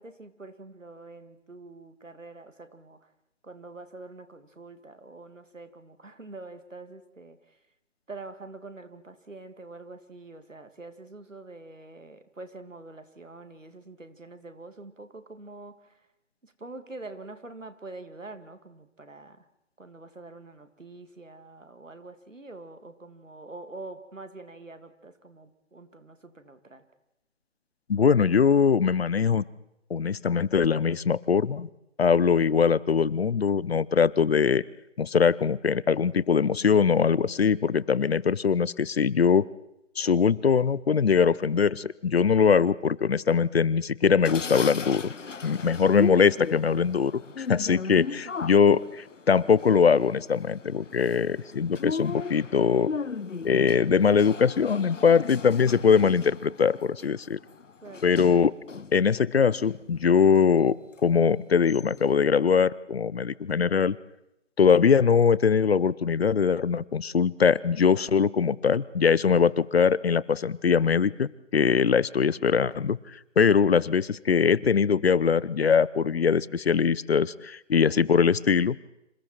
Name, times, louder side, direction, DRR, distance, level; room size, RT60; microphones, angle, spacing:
voice 1, 0.0-3.1 3.4-7.6 8.1-16.1 16.4-19.5 19.8-26.9 47.5-48.3 57.8-58.1, right 3 dB, 90° right, 10 dB, 2.6 m, -45 dB
voice 2, 27.9-29.5 29.9-31.7 32.0-34.6 35.0-39.4 40.0-45.1 45.4-48.0 48.4-52.9 53.4-57.4 58.0-58.5 58.9-60.8 61.0-64.0 64.6-73.0 73.4-78.8, left 6 dB, 55° left, 21 dB, 0.8 m, -22 dB
sound 1, 44.2-59.0 59.4-60.4 61.0-61.1 61.4-62.2, left 5 dB, 80° left, 1.1 m, -37 dB
29.0 x 27.0 x 4.6 m, 0.82 s
figure-of-eight pair, 150°, 37 cm